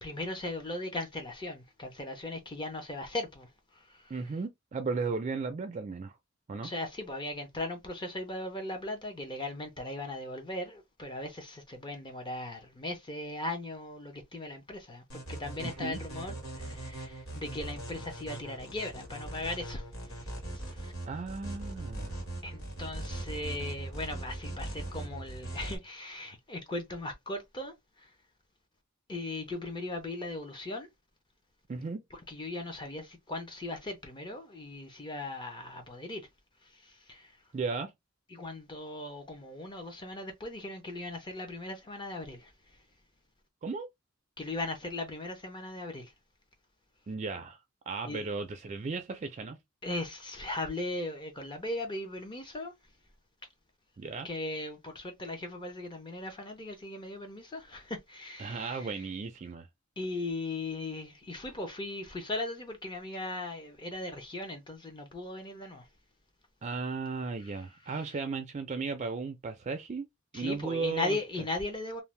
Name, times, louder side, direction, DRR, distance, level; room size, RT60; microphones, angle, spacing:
voice 1, 0.0-4.2 6.6-20.9 22.4-28.1 29.1-30.9 32.1-36.3 36.6-37.4 38.3-42.5 44.4-46.1 48.0-48.3 49.8-52.7 54.2-59.0 60.0-65.9 67.4-67.6 67.8-68.2 70.3-72.0, left 2 dB, 25° left, 0.6 m, -38 dB
voice 2, 4.1-6.2 6.5-6.7 15.6-16.0 21.1-22.2 31.7-32.0 37.5-37.9 43.6-43.9 47.1-47.6 47.9-49.6 54.0-54.3 58.4-59.7 66.6-70.1 70.3-71.2, right 4 dB, 35° right, 0.4 m, -35 dB
sound 1, 15.1-25.8, right 2 dB, 75° left, 1.4 m, -40 dB
2.6 x 2.0 x 3.1 m
head